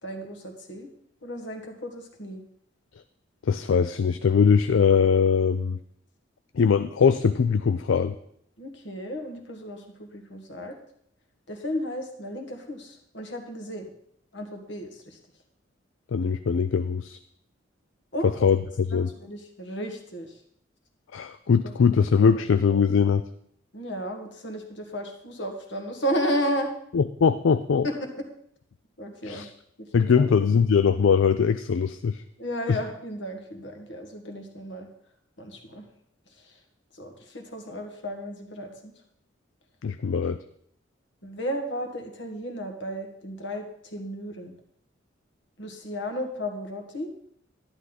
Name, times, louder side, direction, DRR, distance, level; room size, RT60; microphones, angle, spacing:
voice 1, 0.0-0.9 1.2-2.4 8.6-10.7 11.5-13.9 14.3-15.2 18.1-18.5 18.9-20.3 21.6-21.7 22.3-22.4 23.7-26.7 27.8-28.2 29.0-29.4 29.8-30.2 32.4-34.9 35.4-35.8 37.0-38.9 41.2-44.5 45.6-47.1, equal, 65° left, 4 dB, 1.7 m, -33 dB
voice 2, 3.4-5.8 6.5-8.2 16.1-17.2 18.2-19.1 21.1-23.2 26.9-27.9 29.2-29.5 29.9-32.2 32.7-32.8 39.8-40.4, left 6 dB, 80° left, 12 dB, 0.4 m, -21 dB
11.5 x 11.0 x 4.0 m, 0.68 s
head